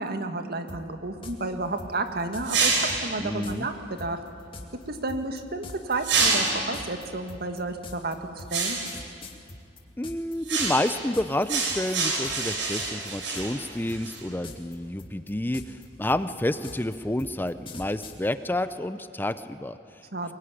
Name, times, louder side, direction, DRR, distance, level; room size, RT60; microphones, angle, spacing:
voice 1, 0.0-4.2 4.9-8.8 20.1-20.3, right 2 dB, 55° right, 7 dB, 2.0 m, -31 dB
sound 1, 0.7-0.8 1.2-1.4 1.8-2.5 2.9-3.0 3.4-3.6 4.0-10.3 10.6-11.4 11.7-12.0 12.2-12.5 12.8-13.6 13.9-14.7 15.0-18.2, left 2 dB, 30° left, 2.5 m, -42 dB
sound 2, 2.4-3.2 6.0-6.8 8.5-9.0 10.5-11.0 11.5-14.2, right 4 dB, 85° right, 4.9 m, -27 dB
voice 2, 3.2-3.7 10.0-20.0, left 1 dB, 10° left, 12 dB, 0.6 m, -29 dB
23.0 x 22.5 x 10.0 m, 2.5 s
head